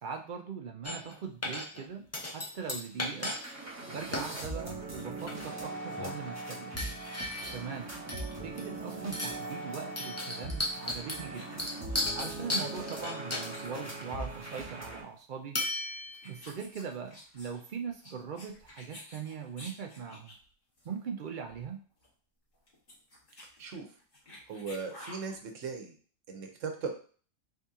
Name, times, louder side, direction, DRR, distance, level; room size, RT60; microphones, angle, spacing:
voice 1, 0.0-3.4 3.9-6.8 7.5-7.9 8.4-11.7 12.1-15.6 16.2-20.3 20.8-21.8, right 6 dB, 60° right, 4 dB, 0.5 m, -41 dB
sound 1, 0.8-1.2 1.4-1.8 2.1-3.4 3.7-3.8 4.1-4.3 5.0-5.6 5.9-6.2 6.8-7.7 8.1-8.8 9.1-9.5 10.0-14.0 15.5-16.4, left 1 dB, 20° left, 0.4 m, -35 dB
sound 2, 2.8-2.9 3.1-15.0, right 2 dB, 15° right, 0.9 m, -40 dB
sound 3, 11.3-14.4 14.7-14.9 15.7-15.8 16.1-20.4 20.8-20.9 21.2-21.3 21.5-21.7 22.0-22.1 22.5-25.4, left 1 dB, 45° left, 1.5 m, -51 dB
voice 2, 24.5-25.9 26.3-26.9, right 5 dB, 90° right, 4 dB, 1.1 m, -38 dB
3.6 x 2.8 x 3.6 m, 0.42 s
omnidirectional pair, 1.3 m